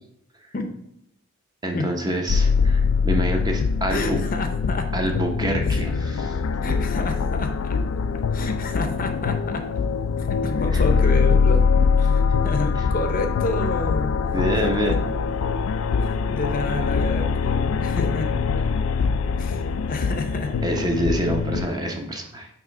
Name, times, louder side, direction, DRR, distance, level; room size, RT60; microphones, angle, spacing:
voice 1, 1.6-4.2 4.9-5.9 14.3-15.1 20.6-22.5, right 1 dB, 20° right, 3 dB, 0.7 m, -26 dB
sound 1, 2.3-21.7, left 5 dB, 75° left, 0.3 m, -23 dB
voice 2, 3.9-4.9 5.7-5.9 6.6-7.8 8.3-9.7 10.2-11.6 12.0-14.2 14.8-15.0 16.0-18.3 19.4-20.5, left 2 dB, 40° left, 6 dB, 0.6 m, -29 dB
4.9 x 3.5 x 5.6 m, 0.79 s
head